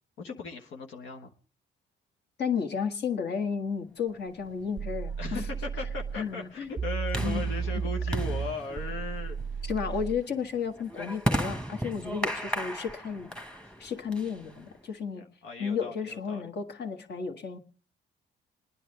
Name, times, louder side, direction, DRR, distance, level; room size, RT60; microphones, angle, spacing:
voice 1, 0.2-1.3 5.2-10.0 13.6-13.7 15.4-16.4, left 3 dB, 85° left, 2 dB, 1.3 m, -38 dB
voice 2, 2.4-5.4 6.1-6.7 7.2-7.6 9.6-13.3 13.8-15.2 15.6-17.6, left 6 dB, 55° left, 6 dB, 1.6 m, -33 dB
sound 1, 4.4-14.8, right 1 dB, 5° left, 1.3 m, -36 dB
sound 2, 4.8-6.2 6.8-10.2, right 6 dB, 25° right, 0.6 m, -33 dB
28.0 x 10.0 x 3.3 m, 0.40 s
cardioid pair, 90°, 20 cm